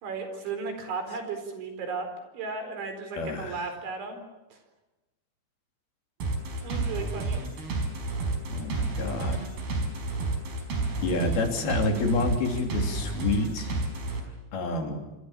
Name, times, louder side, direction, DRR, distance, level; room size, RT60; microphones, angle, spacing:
voice 1, 0.0-2.1 2.3-4.2 4.5-4.6 6.6-7.5, right 4 dB, 80° right, 7 dB, 6.8 m, -35 dB
voice 2, 3.2-3.6 8.5-9.4 11.0-13.7 14.5-15.0, left 3 dB, 60° left, 3 dB, 5.0 m, -28 dB
sound 1, 6.2-14.2, right 3 dB, 60° right, 6.7 m, -30 dB
27.0 x 26.0 x 7.4 m, 1.1 s
omnidirectional pair, 5.2 m